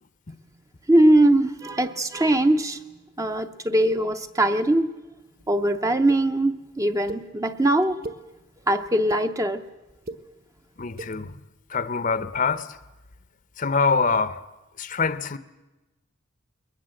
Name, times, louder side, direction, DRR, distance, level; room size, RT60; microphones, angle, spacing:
voice 1, 0.9-2.8 3.2-4.9 5.5-8.0 8.7-9.6, right 1 dB, 15° right, 0.6 m, -21 dB
sound 1, 6.1-6.2 7.1-7.2 7.8-8.2 8.8-9.2 9.9-10.2 10.9-11.1, right 2 dB, 45° right, 1.2 m, -36 dB
voice 2, 10.8-11.4 11.7-12.8 13.6-14.4 14.8-15.4, left 4 dB, 40° left, 0.7 m, -25 dB
22.0 x 19.5 x 7.7 m
head